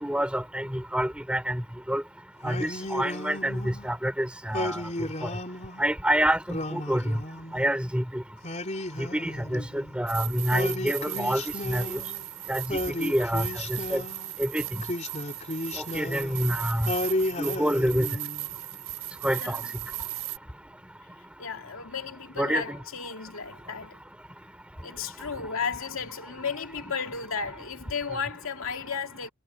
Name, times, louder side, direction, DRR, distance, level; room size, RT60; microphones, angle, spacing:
voice 1, 0.0-1.6 1.9-2.0 2.4-4.8 5.8-7.2 7.5-8.2 9.0-11.4 11.7-12.0 12.5-13.5 13.9-14.0 14.4-14.6 15.9-16.9 17.4-18.1 19.2-19.6 22.4-22.6, equal, 5° right, 3.8 m, -27 dB
Singing, 2.4-3.9 4.5-5.9 6.5-7.8 8.4-10.0 10.5-12.3 12.7-14.3 14.8-16.5 16.9-18.5, left 1 dB, 35° left, 3.8 m, -34 dB
sound 1, 10.1-20.4, right 18 dB, 70° right, 3.4 m, -37 dB
voice 2, 19.2-19.7 21.4-24.0 24.8-29.3, left 5 dB, 75° left, 2.5 m, -34 dB
head